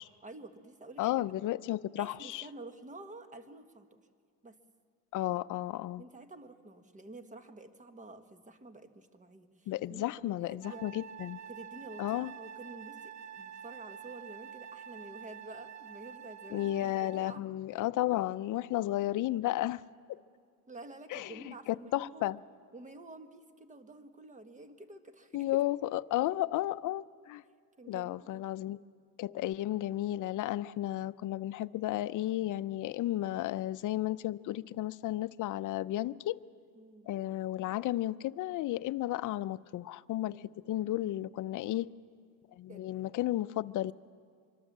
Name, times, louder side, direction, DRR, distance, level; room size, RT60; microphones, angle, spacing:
voice 1, 0.2-1.1 2.0-3.9 4.4-4.6 6.0-10.9 11.5-16.7 17.0-17.4 20.7-22.4 22.7-25.6 25.9-26.0 27.8-28.4 36.7-37.1 41.6-42.0 42.7-43.2 43.8-43.9, right 2 dB, 20° right, 1.4 m, -49 dB
voice 2, 1.0-2.4 5.1-6.0 9.7-11.4 12.0-12.3 16.5-19.8 20.1-20.2 21.1-22.4 25.3-27.4 27.9-28.8 29.2-36.4 37.1-41.9 42.6-43.9, left 15 dB, 50° left, 0.6 m, -33 dB
Wind instrument woodwind instrument, 10.6-17.4, right 8 dB, 45° right, 0.7 m, -47 dB
25.0 x 24.0 x 7.4 m
cardioid pair, 145°, 40 cm